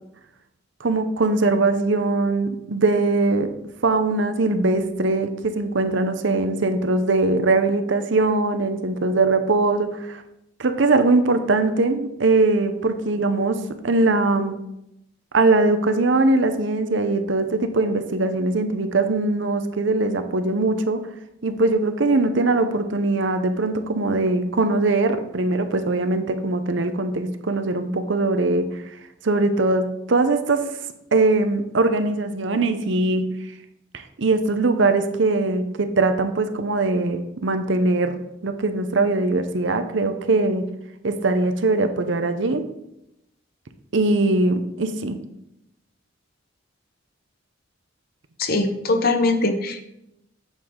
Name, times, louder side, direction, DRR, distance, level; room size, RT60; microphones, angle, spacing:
voice 1, 0.8-3.5 3.8-10.2 10.6-14.6 15.3-21.1 21.4-28.8 29.2-30.7 31.1-33.3 33.9-40.7 41.0-42.7 43.9-45.2, right 2 dB, 65° right, 8 dB, 0.7 m, -21 dB
voice 2, 48.4-49.9, left 2 dB, 50° left, 7 dB, 0.8 m, -22 dB
8.7 x 6.8 x 3.8 m, 0.85 s
head